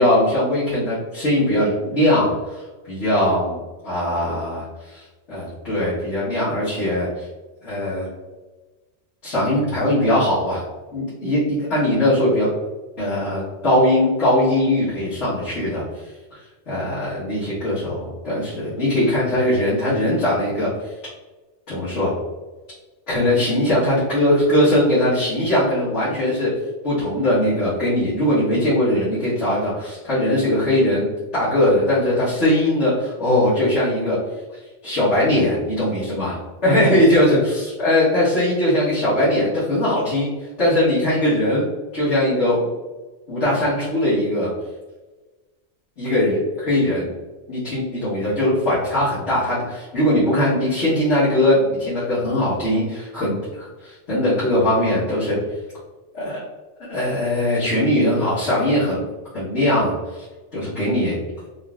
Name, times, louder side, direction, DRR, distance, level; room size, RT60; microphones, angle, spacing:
voice 1, 0.0-2.3 2.9-3.6 3.8-7.2 7.6-8.1 9.2-10.6 10.9-12.5 13.0-15.8 16.7-20.7 21.7-22.1 23.1-26.5 26.8-31.1 31.3-34.2 34.8-36.3 36.6-40.3 40.6-41.7 41.9-42.7 43.3-44.5 46.0-47.1 47.5-53.3 53.8-55.4 56.1-56.4 56.9-59.0 59.3-59.9 60.5-61.2, left 1 dB, 75° left, -12 dB, 1.6 m, -20 dB
3.8 x 3.1 x 2.4 m, 1.2 s
omnidirectional pair, 1.2 m